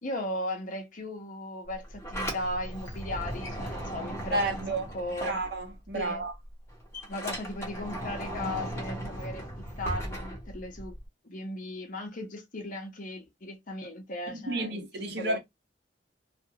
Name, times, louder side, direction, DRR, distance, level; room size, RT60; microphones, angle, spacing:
voice 1, 0.0-4.6 4.9-5.4 5.9-6.2 7.1-9.5 9.8-11.0 11.2-14.9 15.2-15.4, left 1 dB, 50° left, 0.8 m, -37 dB
Sliding door, 1.7-6.0 6.3-11.0, right 1 dB, 15° left, 1.0 m, -37 dB
voice 2, 4.3-4.9 5.2-6.3 14.3-15.4, right 2 dB, 65° right, 0.9 m, -31 dB
2.5 x 2.4 x 2.7 m
head